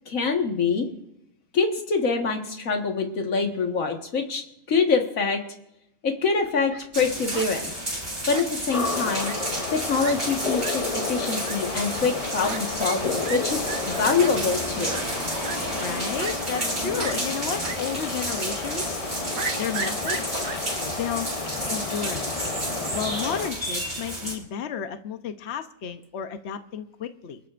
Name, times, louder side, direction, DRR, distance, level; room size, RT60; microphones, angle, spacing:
voice 1, 0.1-0.9 1.5-5.4 6.0-7.7 8.3-9.3 9.7-15.0, left 4 dB, 80° left, 3 dB, 2.0 m, -25 dB
Fowl, 6.4-6.8 7.3-7.5 8.3-8.8 9.2-9.4 9.7-9.8 10.0-10.1 10.6-10.7 11.4-11.5 12.4-12.6 12.8-13.0 13.2-13.4 13.7-13.8 14.2-14.3 14.9-15.0 15.4-15.6 16.2-16.7 17.0-17.1 17.6-17.8 18.1-18.2 19.4-20.6, right 5 dB, 80° right, 1.5 m, -34 dB
sound 1, 6.9-24.4, right 1 dB, 30° right, 4.0 m, -32 dB
sound 2, 8.7-23.5, left 4 dB, 35° left, 0.7 m, -32 dB
voice 2, 15.8-19.0 19.6-20.5 20.8-21.3 21.7-22.5 22.9-27.4, left 7 dB, 60° left, 8 dB, 1.0 m, -32 dB
28.5 x 13.0 x 2.5 m, 0.85 s
omnidirectional pair, 1.4 m